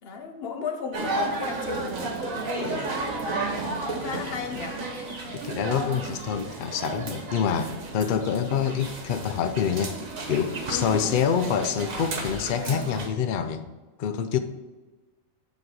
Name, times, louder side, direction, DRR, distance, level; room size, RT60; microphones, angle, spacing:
voice 1, 0.0-4.8 8.4-8.7 10.7-11.2, left 5 dB, 50° left, 1.0 m, -36 dB
sound 1, 0.9-13.1, right 3 dB, 70° right, 1.5 m, -33 dB
voice 2, 5.4-10.0 10.3-13.7 14.0-14.4, left 7 dB, 90° left, 0.4 m, -26 dB
7.6 x 4.3 x 4.7 m
omnidirectional pair, 1.4 m